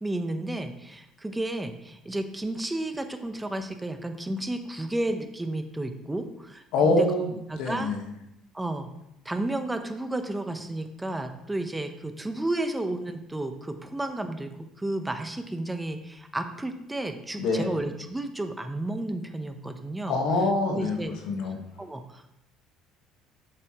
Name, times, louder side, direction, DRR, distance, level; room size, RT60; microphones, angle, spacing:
voice 1, 0.0-7.1 7.5-7.9 8.5-8.9 9.2-20.2 20.7-21.1 21.8-22.3, right 1 dB, 10° right, 7 dB, 0.9 m, -32 dB
voice 2, 6.7-7.3 7.6-8.0 17.4-17.7 20.0-21.6, left 2 dB, 75° left, 3 dB, 1.5 m, -25 dB
8.1 x 7.4 x 3.1 m, 0.83 s
supercardioid pair, 80°, 0 cm